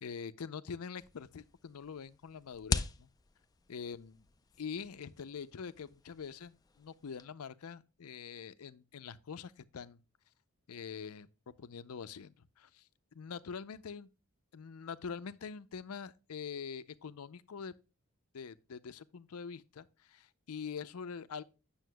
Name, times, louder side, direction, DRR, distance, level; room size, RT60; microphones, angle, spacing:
voice 1, 0.0-3.1 3.7-4.3 4.6-10.0 10.7-11.3 11.6-12.9 13.1-14.1 14.5-17.7 18.3-21.4, left 6 dB, 75° left, 0.5 m, -44 dB
sound 1, 1.0-7.3, left 4 dB, 15° left, 0.3 m, -42 dB
9.2 x 6.9 x 2.2 m
head